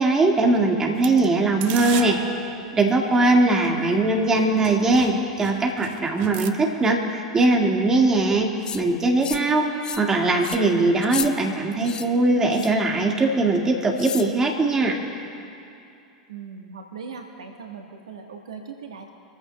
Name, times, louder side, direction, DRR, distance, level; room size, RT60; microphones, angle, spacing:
voice 1, 0.0-2.2 2.8-8.5 8.7-9.7 10.0-15.0, right 2 dB, 15° right, 1 dB, 1.8 m, -20 dB
sound 1, 1.0-3.7 4.3-4.4 4.6-6.5, right 11 dB, 45° right, 0.7 m, -36 dB
voice 2, 3.5-4.1 16.3-19.1, right 5 dB, 70° right, 3 dB, 1.2 m, -39 dB
sound 2, 8.6-8.8 9.2-9.5 9.8-10.1 10.4-10.6 11.0-11.3 11.8-12.1 12.5-12.8 14.0-14.3, left 7 dB, 25° left, 0.6 m, -32 dB
25.0 x 14.5 x 2.2 m, 2.6 s
figure-of-eight pair, 85°, 3 cm